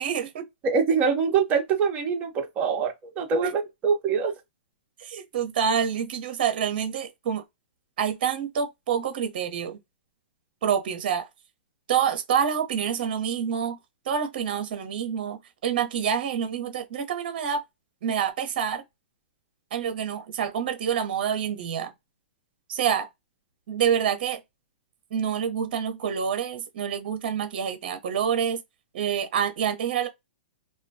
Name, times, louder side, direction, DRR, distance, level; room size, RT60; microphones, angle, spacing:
voice 1, 0.0-0.5 3.4-3.5 5.0-7.4 8.0-9.8 10.6-11.3 11.9-13.8 14.0-17.6 18.0-18.8 19.7-21.9 22.7-23.1 23.7-24.4 25.1-28.6 28.9-30.1, right 8 dB, 55° right, 0.7 m, -27 dB
voice 2, 0.6-4.3, right 5 dB, 25° right, 0.8 m, -24 dB
2.2 x 2.2 x 2.6 m
hypercardioid pair, 145°, 6 cm